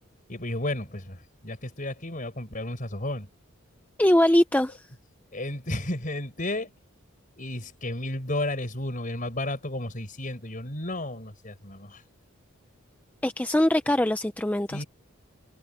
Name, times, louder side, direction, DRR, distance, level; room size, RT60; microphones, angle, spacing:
voice 1, 0.3-3.3 5.3-6.7 7.4-12.0 14.7-14.9, left 1 dB, 40° left, 4.8 m, -33 dB
voice 2, 4.0-4.9 13.2-14.8, left 1 dB, 5° left, 0.5 m, -22 dB
head